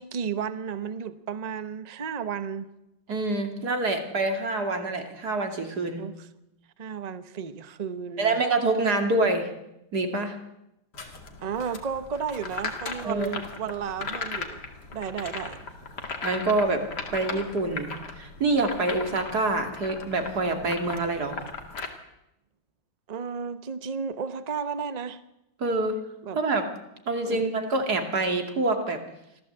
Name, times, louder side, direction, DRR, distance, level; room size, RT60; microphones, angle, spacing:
voice 1, 0.0-2.7 6.0-6.3 6.8-8.4 11.4-14.6 14.9-15.6 16.0-16.2 23.1-25.2 26.2-26.4 27.3-27.5, right 6 dB, 30° right, 12 dB, 0.7 m, -33 dB
voice 2, 3.1-6.0 8.2-9.5 9.9-10.3 11.0-11.1 13.0-13.3 16.2-16.8 17.1-21.4 25.6-26.0 26.4-26.6 27.1-29.0, right 2 dB, 50° right, 5 dB, 2.9 m, -26 dB
sound 1, 10.9-21.9, left 4 dB, 55° left, 2.8 m, -37 dB
25.5 x 15.5 x 8.0 m, 0.87 s
omnidirectional pair, 2.2 m